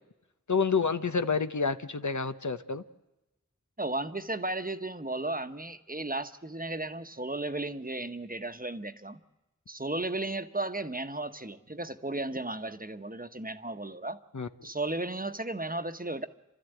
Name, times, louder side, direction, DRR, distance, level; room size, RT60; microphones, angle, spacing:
voice 1, 0.5-2.8 14.3-14.7, left 5 dB, 75° left, 10 dB, 0.9 m, -29 dB
voice 2, 3.8-9.2 9.7-14.2 14.6-16.3, right 2 dB, 30° right, 9 dB, 1.1 m, -34 dB
29.0 x 13.0 x 9.1 m, 1.0 s
wide cardioid pair, 45°, 30 cm